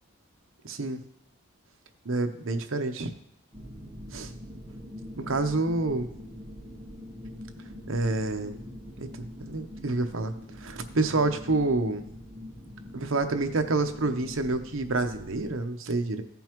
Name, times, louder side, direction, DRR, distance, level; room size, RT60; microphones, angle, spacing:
voice 1, 0.6-1.0 2.0-3.1 4.1-4.3 5.2-6.1 7.9-8.6 9.0-12.0 12.9-16.2, right 3 dB, 65° right, 7 dB, 0.8 m, -28 dB
sound 1, 3.5-15.5, left 1 dB, 15° right, 1.2 m, -43 dB
15.0 x 5.4 x 3.0 m, 0.73 s
head